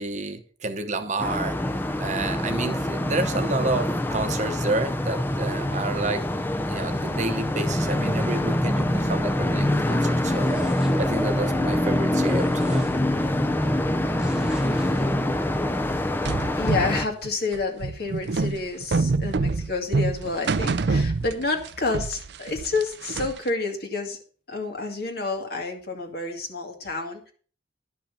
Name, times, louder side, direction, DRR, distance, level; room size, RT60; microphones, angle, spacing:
voice 1, 0.0-1.6 2.0-6.3 6.7-10.5 11.0-12.9, right 3 dB, 40° right, 8 dB, 1.0 m, -30 dB
sound 1, 1.2-17.1, left 1 dB, 10° left, 0.6 m, -25 dB
sound 2, 10.3-11.2 12.2-13.3 14.2-15.1, equal, 5° right, 1.3 m, -36 dB
sound 3, 16.2-21.7 21.9-23.5, right 3 dB, 65° right, 0.5 m, -26 dB
voice 2, 16.5-24.2 24.5-27.3, left 3 dB, 55° left, 2 dB, 2.2 m, -29 dB
11.5 x 6.0 x 5.7 m, 0.41 s
head